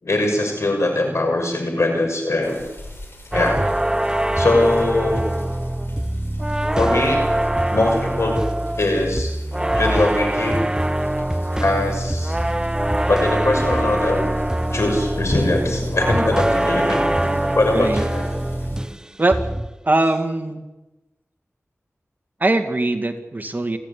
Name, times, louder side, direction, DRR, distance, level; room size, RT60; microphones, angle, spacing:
voice 1, 0.0-2.6 3.3-3.6 4.3-5.3 6.8-7.3 7.7-8.4 8.8-9.3 9.7-10.6 11.6-12.4 13.1-14.3 14.7-17.0 17.5-18.2, left 2 dB, 75° left, 3 dB, 6.3 m, -21 dB
sound 1, 2.4-18.8, left 1 dB, 55° left, 6.7 m, -37 dB
sound 2, 3.3-19.0 19.3-19.8, right 1 dB, 15° right, 0.7 m, -23 dB
voice 2, 17.7-18.0 19.2-19.4 19.8-20.6 22.4-23.8, right 2 dB, 40° right, 6 dB, 2.3 m, -21 dB
30.0 x 11.0 x 9.9 m, 1.1 s
wide cardioid pair, 65°, 5 cm